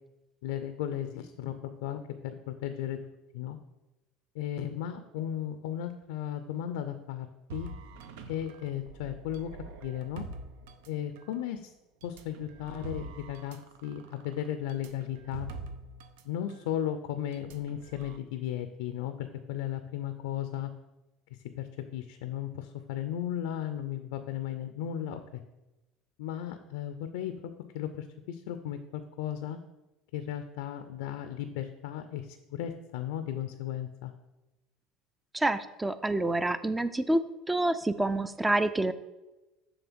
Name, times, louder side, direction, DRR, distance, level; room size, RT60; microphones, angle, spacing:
voice 1, 0.4-3.0 3.3-3.6 4.3-7.3 7.5-7.7 8.3-9.5 9.8-10.3 10.9-11.7 12.0-15.5 16.2-20.7 21.6-21.7 21.9-25.4 26.2-29.6 30.1-34.1, left 10 dB, 85° left, 9 dB, 0.5 m, -35 dB
sound 1, 7.5-11.4 12.0-16.2 16.5-16.7 17.3-18.2, right 4 dB, 85° right, 0.7 m, -45 dB
voice 2, 35.3-37.2 37.5-38.9, right 2 dB, 10° right, 13 dB, 0.4 m, -27 dB
7.1 x 3.3 x 6.1 m, 1.0 s
supercardioid pair, 115°, 0 cm